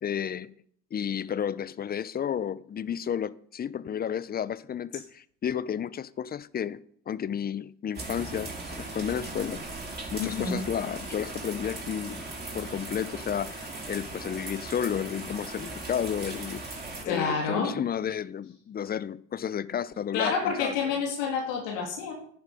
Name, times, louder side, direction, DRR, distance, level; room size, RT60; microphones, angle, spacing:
voice 1, 0.0-0.5 0.9-6.8 7.1-9.6 10.1-12.2 12.5-16.6 17.0-20.9, left 8 dB, 25° left, 0.6 m, -32 dB
sound 1, 7.9-17.0, right 2 dB, 25° right, 5.1 m, -38 dB
voice 2, 10.2-10.6 17.0-17.8 20.1-22.1, left 5 dB, 80° left, 2.8 m, -28 dB
10.5 x 9.8 x 5.0 m
hypercardioid pair, 80°, 37 cm